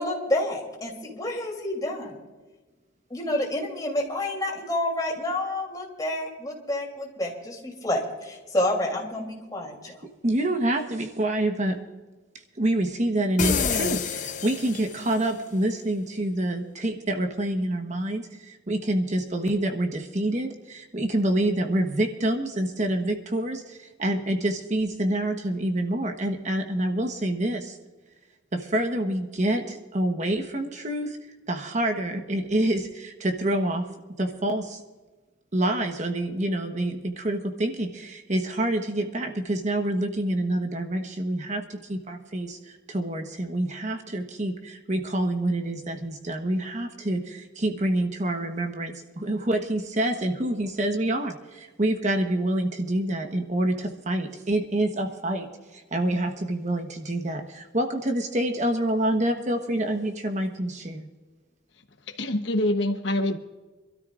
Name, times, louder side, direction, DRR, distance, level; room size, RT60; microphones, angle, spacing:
voice 1, 0.0-2.1 3.1-10.0, left 1 dB, 20° left, 3.2 m, -29 dB
voice 2, 10.2-11.8 12.6-27.8 28.5-31.2 31.5-33.9 34.2-34.8 35.5-61.1, right 1 dB, 40° right, 1.2 m, -27 dB
sound 1, 13.4-15.2, left 6 dB, 40° left, 0.6 m, -27 dB
voice 3, 62.1-63.4, left 1 dB, 65° left, 1.1 m, -25 dB
26.5 x 13.0 x 2.5 m
head